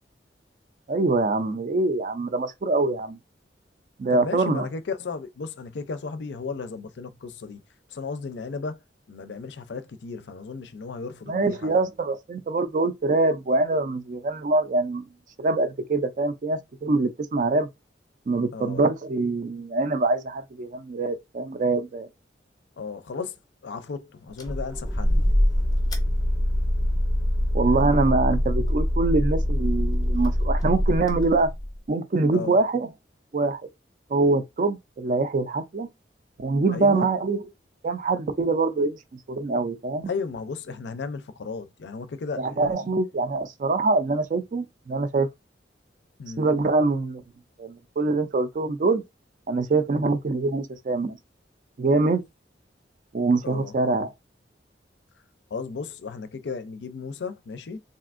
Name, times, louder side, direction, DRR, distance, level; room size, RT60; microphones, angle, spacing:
voice 1, 0.9-3.2 4.0-4.7 11.3-15.0 15.4-17.7 18.3-22.1 27.5-31.5 31.9-32.9 33.3-33.6 34.1-35.9 36.4-37.4 37.8-39.0 39.3-40.1 42.4-45.3 46.4-47.2 47.6-49.0 49.5-51.2 51.8-52.2 53.1-54.1, right 3 dB, 45° right, 0.4 m, -24 dB
voice 2, 4.1-7.6 7.9-8.8 9.1-11.7 18.5-18.8 22.8-23.4 23.6-25.2 32.3-32.6 36.7-37.1 40.1-42.9 46.2-46.5 53.4-53.8 55.5-57.8, left 4 dB, 70° left, 0.4 m, -34 dB
sound 1, 24.4-31.8, left 1 dB, 20° left, 0.7 m, -24 dB
3.3 x 2.6 x 2.4 m
head